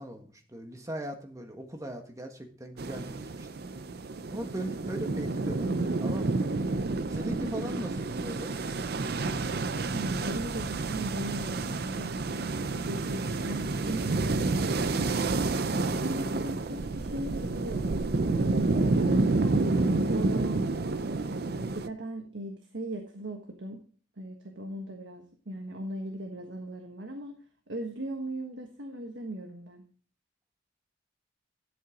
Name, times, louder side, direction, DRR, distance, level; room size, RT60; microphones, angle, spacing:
voice 1, 0.0-3.5 4.3-6.5 7.1-8.6, right 1 dB, 20° right, 4 dB, 1.5 m, -39 dB
sound 1, 2.8-21.9, right 3 dB, 60° right, 0.6 m, -29 dB
voice 2, 9.9-12.1 12.7-15.4 15.8-17.9 18.2-21.0 21.5-23.8 24.2-27.4 27.7-29.8, right 1 dB, 90° right, 3 dB, 1.5 m, -38 dB
12.0 x 7.8 x 3.8 m, 0.43 s
head